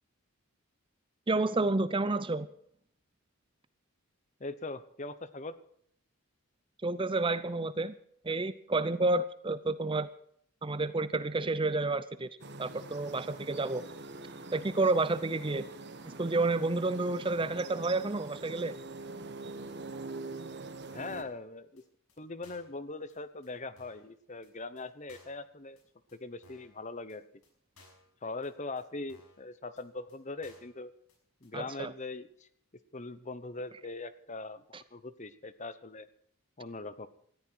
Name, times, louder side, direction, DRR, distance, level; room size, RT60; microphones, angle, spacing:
voice 1, 1.3-2.5 6.8-7.9 8.2-10.1 10.6-12.3 12.6-13.8 14.5-15.6 16.2-18.8 31.5-31.9, right 2 dB, 25° right, 15 dB, 0.6 m, -30 dB
voice 2, 4.4-5.6 20.9-21.8 22.2-25.8 26.1-27.2 28.2-30.9 31.4-32.5 32.9-36.1 36.6-37.1, left 3 dB, 35° left, 14 dB, 1.0 m, -41 dB
sound 1, 12.4-21.2, right 3 dB, 50° right, 1.7 m, -44 dB
sound 2, 21.1-21.4 21.8-21.9 22.1-22.2 22.4-22.8 23.1-23.2 23.4-23.5 23.8-24.1 24.4-24.5 24.8-24.9 25.1-25.4 25.8-25.9 26.1-26.2 26.4-26.7 27.1-27.2 27.4-27.5 27.8-28.1 28.4-28.5 28.8-28.9 29.1-29.4 29.8-29.9 30.1-30.2 30.4-30.8 31.1-31.2 31.4-31.5, left 2 dB, 75° left, 6.2 m, -60 dB
19.0 x 14.0 x 4.6 m, 0.65 s
head